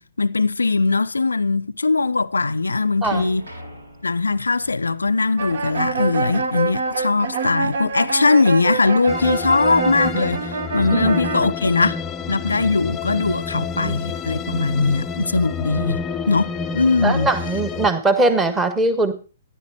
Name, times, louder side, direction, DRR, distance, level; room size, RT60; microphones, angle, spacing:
voice 1, 0.0-3.4 4.0-12.0 12.3-16.0 16.3-17.3, left 3 dB, 70° left, 0.5 m, -20 dB
sound 1, 2.6-9.2, equal, 75° right, 6.3 m, -43 dB
sound 2, 5.4-11.5, right 4 dB, 55° right, 1.2 m, -26 dB
sound 3, 9.1-17.9, left 5 dB, 15° left, 0.5 m, -29 dB
voice 2, 13.7-14.1 17.0-19.1, right 2 dB, 10° right, 1.4 m, -20 dB
14.5 x 10.5 x 4.5 m
figure-of-eight pair, 120°, 0 cm